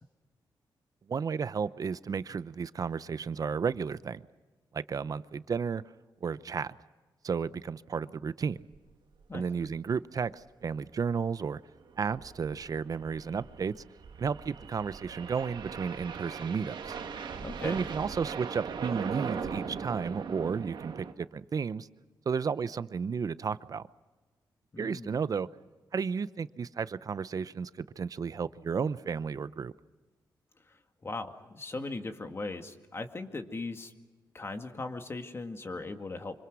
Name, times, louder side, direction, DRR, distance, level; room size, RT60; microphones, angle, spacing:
voice 1, 1.1-4.3 4.7-5.8 6.2-6.8 7.2-8.6 9.3-11.6 12.0-13.8 14.2-16.9 17.6-21.9 22.3-23.9 24.8-25.5 25.9-29.7, right 6 dB, 50° right, 16 dB, 0.7 m, -33 dB
sound 1, 8.7-8.9 9.2-9.3 9.6-9.7 10.2-10.5 11.8-21.1, right 6 dB, 75° right, 1.8 m, -40 dB
voice 2, 17.4-17.8 24.7-25.1 30.6-33.9 34.3-36.4, left 3 dB, 30° left, 6 dB, 2.1 m, -39 dB
25.5 x 25.5 x 6.3 m, 1.3 s
cardioid pair, 90°, 8 cm